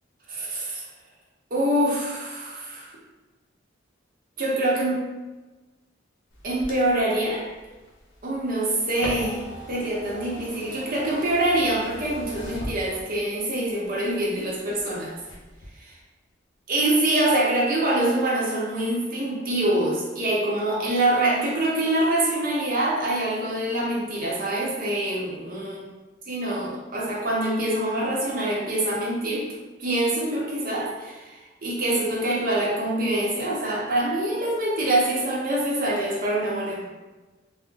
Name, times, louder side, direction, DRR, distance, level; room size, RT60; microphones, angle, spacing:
voice 1, 0.3-0.8 1.5-2.9 4.4-5.0 6.4-7.5 8.2-9.4 9.7-15.1 15.8-15.9 16.7-25.8 26.3-29.5 29.8-36.8, right 1 dB, 45° right, -4 dB, 0.7 m, -25 dB
sound 1, 6.3-13.4 13.8-14.8 15.2-15.7, left 1 dB, 75° left, 0.7 m, -39 dB
2.4 x 2.1 x 3.7 m, 1.2 s
head